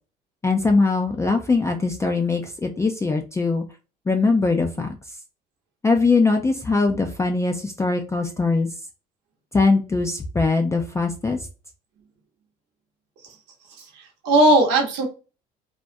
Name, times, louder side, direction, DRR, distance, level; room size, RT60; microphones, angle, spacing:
voice 1, 0.4-3.6 4.1-5.0 5.8-8.7 9.5-11.4, left 3 dB, 15° left, 3 dB, 0.3 m, -21 dB
voice 2, 13.8-15.1, right 1 dB, 75° right, 0 dB, 0.8 m, -18 dB
2.3 x 2.1 x 2.5 m, 0.32 s
supercardioid pair, 90°, 19 cm